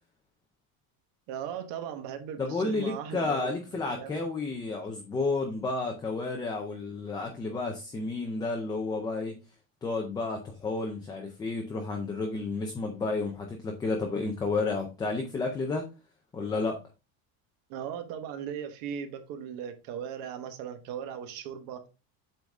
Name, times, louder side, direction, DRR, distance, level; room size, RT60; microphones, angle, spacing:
voice 1, 1.3-3.5 3.9-4.1 17.7-21.9, right 8 dB, 55° right, 1.2 m, -38 dB
voice 2, 2.4-9.4 9.8-15.9 16.3-16.8, left 3 dB, 10° left, 0.4 m, -31 dB
8.1 x 4.0 x 3.5 m
cardioid pair, 180°, 41 cm